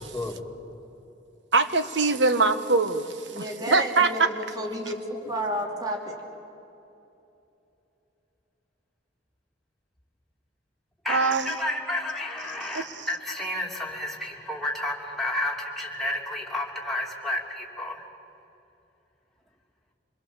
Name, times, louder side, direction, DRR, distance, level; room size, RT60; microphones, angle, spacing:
voice 1, 0.1-0.5 11.0-18.0, left 1 dB, ahead, -2 dB, 2.9 m, -31 dB
voice 2, 1.5-3.1 3.4-4.1 11.1-11.5 12.7-13.1, right 3 dB, 70° right, 10 dB, 1.1 m, -23 dB
voice 3, 3.3-6.1, equal, 20° right, 1 dB, 2.7 m, -31 dB
26.5 x 21.5 x 7.3 m, 2.9 s
head